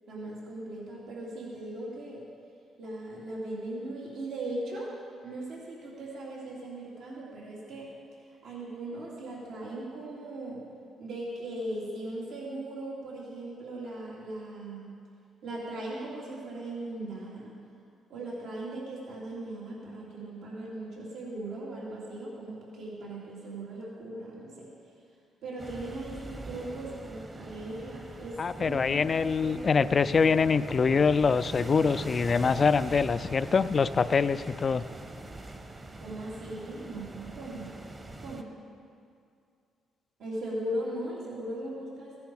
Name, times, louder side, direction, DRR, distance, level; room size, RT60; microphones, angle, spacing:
voice 1, 0.1-2.2 2.8-4.9 5.2-7.9 8.4-10.6 11.0-14.9 15.4-17.5 18.1-24.7 25.4-29.0 29.4-30.0 36.0-37.7 38.2-38.5 40.2-42.2, right 1 dB, 75° right, -5 dB, 2.9 m, -38 dB
sound 1, 25.6-38.4, right 2 dB, 25° right, 1.1 m, -42 dB
voice 2, 28.4-34.8, left 5 dB, 40° left, 15 dB, 0.4 m, -24 dB
15.5 x 10.5 x 4.8 m, 2.4 s
cardioid pair, 90°, 0 cm